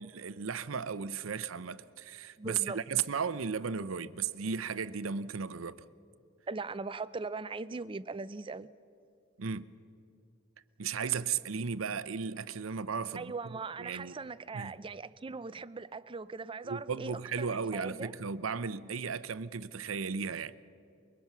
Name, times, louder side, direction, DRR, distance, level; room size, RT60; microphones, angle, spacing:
voice 1, 0.0-5.8 9.4-9.7 10.8-14.1 14.5-14.7 16.6-20.5, right 6 dB, 80° right, 0.7 m, -35 dB
voice 2, 2.4-2.8 6.5-8.7 13.2-18.2, right 4 dB, 25° right, 0.5 m, -40 dB
24.0 x 22.5 x 6.0 m
head